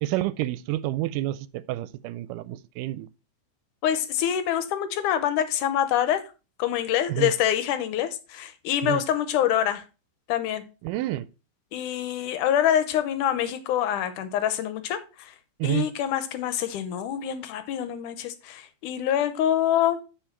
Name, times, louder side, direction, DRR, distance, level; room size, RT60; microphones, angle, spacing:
voice 1, 0.0-3.1 7.1-7.3 8.8-9.0 10.8-11.3 15.6-15.9, right 15 dB, 90° right, 2.2 m, -29 dB
voice 2, 3.8-6.2 6.6-9.8 10.3-10.6 11.7-15.3 15.6-20.0, left 10 dB, 80° left, 2.3 m, -25 dB
9.0 x 4.9 x 4.5 m
omnidirectional pair, 3.7 m